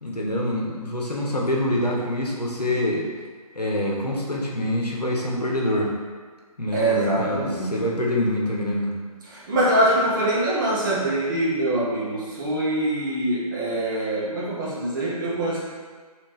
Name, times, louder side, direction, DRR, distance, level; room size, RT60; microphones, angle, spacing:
voice 1, 0.0-3.1 3.5-5.9 6.6-9.0, left 1 dB, 90° left, -2 dB, 0.9 m, -25 dB
voice 2, 6.7-7.9 9.2-15.6, right 1 dB, 30° right, -7 dB, 0.9 m, -24 dB
3.3 x 3.0 x 3.1 m, 1.5 s
figure-of-eight pair, 145°, 20 cm